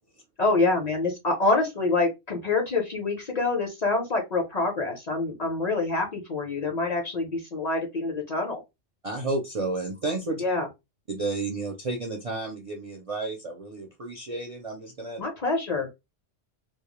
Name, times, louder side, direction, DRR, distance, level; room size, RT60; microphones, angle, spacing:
voice 1, 0.4-8.6 10.4-10.7 15.2-15.9, left 3 dB, 45° left, 0.6 m, -26 dB
voice 2, 9.0-10.4 11.1-15.2, right 3 dB, 50° right, 0.4 m, -31 dB
2.2 x 2.0 x 2.9 m
omnidirectional pair, 1.1 m